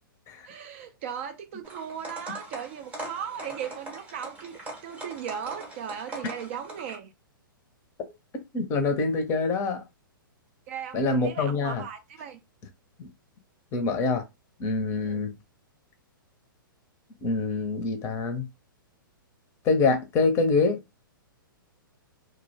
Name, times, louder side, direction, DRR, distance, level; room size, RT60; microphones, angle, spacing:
voice 1, 0.4-4.5 4.8-7.1 10.7-12.4 15.0-15.2, right 8 dB, 35° right, 0.4 m, -37 dB
sound 1, 1.6-7.0, right 2 dB, 10° right, 0.8 m, -41 dB
voice 2, 8.5-9.8 10.9-11.8 13.0-13.1 13.7-14.2 14.6-15.3 17.2-18.5 19.6-20.8, left 3 dB, 25° left, 0.6 m, -25 dB
2.3 x 2.2 x 3.1 m
figure-of-eight pair, 110°, 12 cm